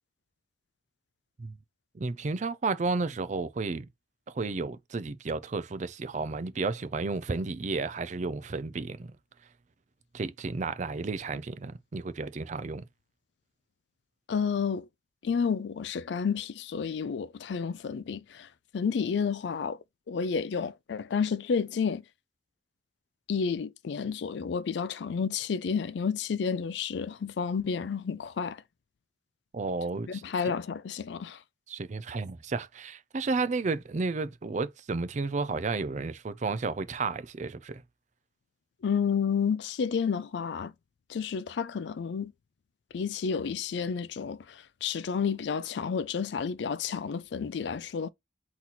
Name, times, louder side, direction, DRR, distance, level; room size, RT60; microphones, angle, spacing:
voice 1, 1.9-3.9 4.3-9.1 10.1-12.8 29.5-30.2 31.7-37.8, right 3 dB, 40° right, 0.4 m, -32 dB
voice 2, 14.3-14.9 15.2-18.5 18.7-19.8 20.1-22.0 23.3-28.6 30.1-31.4 38.8-40.7 41.1-42.3 42.9-48.1, left 6 dB, 65° left, 0.4 m, -30 dB
4.1 x 2.9 x 4.1 m
head